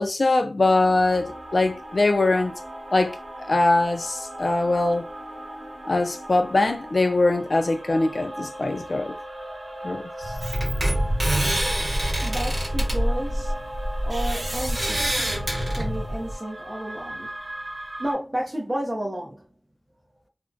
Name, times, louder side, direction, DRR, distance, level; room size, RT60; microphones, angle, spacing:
voice 1, 0.0-2.6 2.9-3.2 3.5-5.1 5.9-9.1 9.8-10.0, left 2 dB, 55° left, 0.4 m, -22 dB
sound 1, 0.6-18.1, right 1 dB, 80° right, 0.9 m, -38 dB
sound 2, 10.2-16.3, equal, 50° right, 1.1 m, -25 dB
voice 2, 12.2-13.6 14.0-15.1 15.8-17.3 18.0-19.5, right 1 dB, 30° right, 0.6 m, -31 dB
2.4 x 2.0 x 2.5 m
wide cardioid pair, 65°, 0 cm